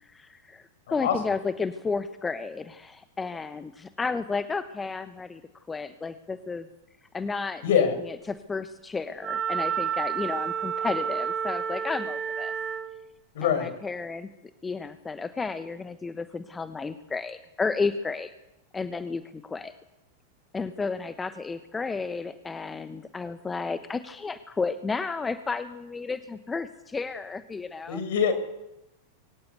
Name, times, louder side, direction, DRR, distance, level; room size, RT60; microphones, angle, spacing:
voice 1, 0.0-5.4 5.7-6.7 7.1-7.8 8.1-12.5 13.4-14.3 14.6-18.3 18.7-19.7 20.5-28.0, left 4 dB, 15° left, 11 dB, 1.2 m, -32 dB
voice 2, 7.6-7.9 13.3-13.7 27.9-28.3, left 7 dB, 55° left, 9 dB, 5.8 m, -24 dB
Wind instrument woodwind instrument, 9.2-12.9, right 7 dB, 30° right, 4.3 m, -30 dB
23.5 x 17.0 x 8.3 m, 0.92 s
figure-of-eight pair, 90°, 0 cm